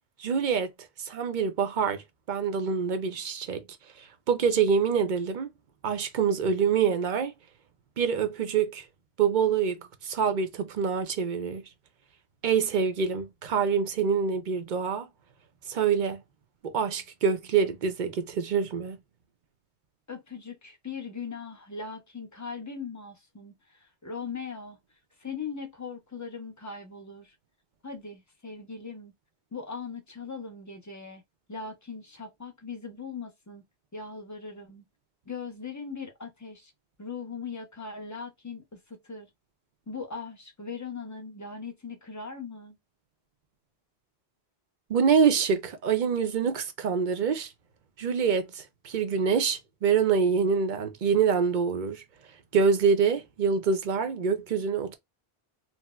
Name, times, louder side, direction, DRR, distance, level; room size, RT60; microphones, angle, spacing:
voice 1, 0.2-0.7 1.0-2.0 2.3-3.6 4.3-5.5 5.8-7.3 8.0-8.8 9.2-11.6 12.4-15.1 15.7-16.2 16.6-19.0 44.9-47.5 48.0-52.0 52.5-55.0, right 6 dB, 55° right, 0.6 m, -25 dB
voice 2, 20.1-24.8 25.2-27.3 27.8-29.1 29.5-31.2 31.5-33.6 33.9-34.8 35.3-36.7 37.0-39.3 39.9-42.8, left 5 dB, 20° left, 0.6 m, -39 dB
4.1 x 2.0 x 2.2 m
omnidirectional pair, 1.1 m